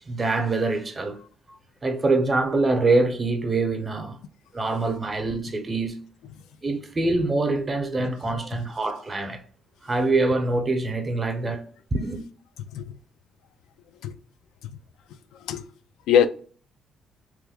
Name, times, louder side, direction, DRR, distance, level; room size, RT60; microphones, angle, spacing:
voice 1, 0.1-1.2 1.8-4.2 4.5-5.9 6.6-9.4 9.8-11.6 11.9-12.2, right 3 dB, 30° right, 0.7 m, -24 dB
voice 2, 15.3-15.6 16.1-16.3, left 9 dB, 90° left, 0.3 m, -22 dB
3.0 x 2.2 x 3.4 m
cardioid pair, 90°, 0 cm